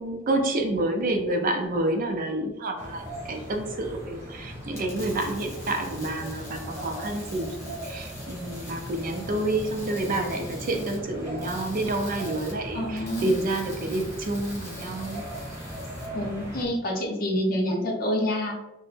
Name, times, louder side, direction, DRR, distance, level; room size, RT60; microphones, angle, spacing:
voice 1, 0.0-15.3, right 2 dB, 45° right, 4 dB, 0.4 m, -29 dB
sound 1, 2.8-16.6, equal, 15° right, 0.9 m, -38 dB
sound 2, 4.6-16.1, left 1 dB, 15° left, 1.2 m, -46 dB
voice 2, 12.7-13.3 16.1-18.5, equal, 45° left, 0 dB, 0.6 m, -27 dB
3.1 x 2.0 x 3.2 m, 1.0 s
head